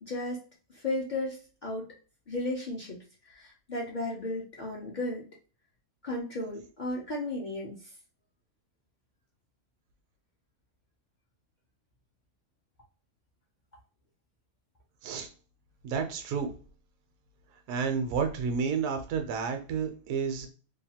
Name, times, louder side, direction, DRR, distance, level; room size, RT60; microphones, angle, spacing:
voice 1, 0.1-0.4 0.7-1.9 2.3-3.0 3.2-5.3 6.0-7.9, left 2 dB, 55° left, -2 dB, 0.5 m, -34 dB
voice 2, 15.8-16.5 17.7-20.5, right 6 dB, 75° right, 5 dB, 1.0 m, -30 dB
2.8 x 2.2 x 2.8 m, 0.36 s
omnidirectional pair, 1.5 m